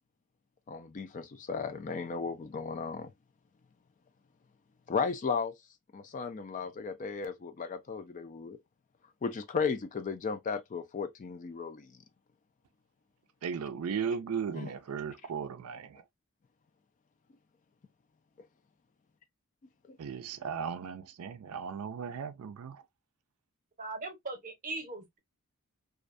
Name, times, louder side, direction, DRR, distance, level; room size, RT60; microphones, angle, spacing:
voice 1, 0.7-3.1 4.9-5.5 5.9-8.6 9.2-11.9 14.5-14.7 19.9-20.0, left 5 dB, 35° left, 0.3 m, -35 dB
voice 2, 13.4-16.0 20.0-22.8, right 6 dB, 75° right, 0.4 m, -36 dB
voice 3, 23.8-25.2, right 3 dB, 35° right, 0.8 m, -39 dB
2.4 x 2.2 x 2.5 m
head